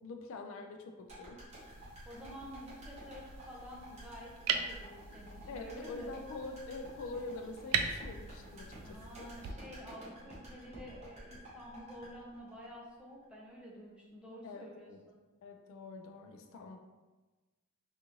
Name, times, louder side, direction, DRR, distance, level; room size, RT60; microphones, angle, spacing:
voice 1, 0.0-1.4 5.5-9.3 14.4-15.0 15.4-16.8, left 3 dB, 60° left, 4 dB, 0.3 m, -45 dB
sound 1, 1.1-13.3 13.5-13.6, equal, 30° right, 1.0 m, -51 dB
sound 2, 1.5-9.5, right 6 dB, 90° right, 0.3 m, -41 dB
voice 2, 2.1-6.1 8.8-15.2, equal, 5° right, -4 dB, 0.6 m, -50 dB
3.6 x 2.5 x 2.9 m, 1.2 s
head